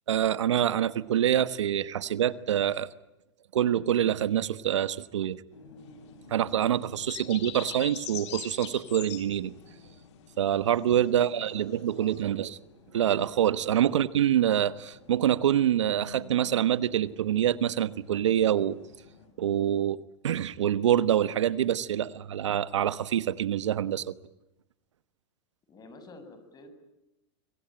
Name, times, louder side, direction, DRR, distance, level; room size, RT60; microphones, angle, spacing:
voice 1, 0.1-2.9 3.5-5.4 6.3-9.5 10.4-12.5 12.9-18.8 19.4-24.1, right 10 dB, 90° right, 15 dB, 1.2 m, -26 dB
sound 1, 5.5-19.3, left 3 dB, 90° left, 7.8 m, -54 dB
sound 2, 5.8-12.2, left 12 dB, 75° left, 3.3 m, -43 dB
voice 2, 7.2-7.7 11.1-12.4 13.8-14.1 25.7-26.7, left 2 dB, 25° left, 9 dB, 7.0 m, -50 dB
25.5 x 23.5 x 8.9 m, 0.92 s
hypercardioid pair, 115°, 15 cm